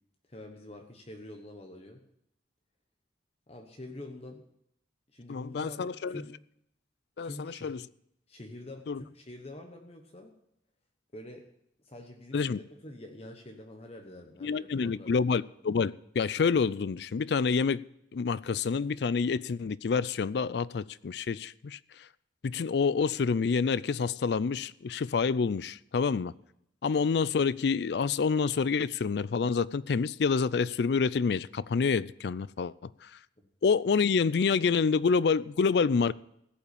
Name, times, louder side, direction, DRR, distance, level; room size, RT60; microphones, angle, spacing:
voice 1, 0.3-2.0 3.5-4.4 5.1-6.4 7.2-7.8 8.3-10.3 11.1-11.4 11.8-15.2, left 1 dB, 35° left, 1.1 m, -46 dB
voice 2, 5.3-6.2 7.2-7.8 8.9-9.0 12.3-12.6 14.4-17.8 18.1-21.8 22.4-26.3 26.8-32.9 33.6-36.1, left 5 dB, 65° left, 0.4 m, -27 dB
16.0 x 5.7 x 8.5 m
head